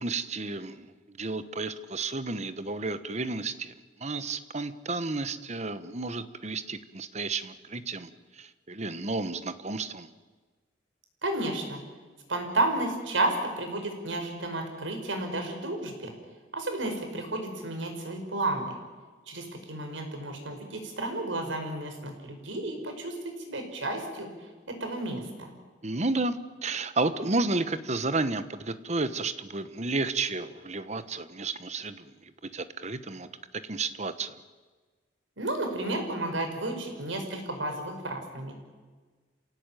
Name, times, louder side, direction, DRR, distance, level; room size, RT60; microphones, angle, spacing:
voice 1, 0.0-3.7 4.0-8.1 8.4-10.1 25.8-26.4 26.6-33.3 33.7-34.4, right 3 dB, 35° right, 12 dB, 1.2 m, -32 dB
voice 2, 11.2-11.8 12.3-16.1 16.5-18.7 19.3-23.2 23.5-24.3 24.7-25.5 35.4-38.5, right 2 dB, 90° right, 5 dB, 5.4 m, -32 dB
28.0 x 17.0 x 9.2 m, 1.4 s
head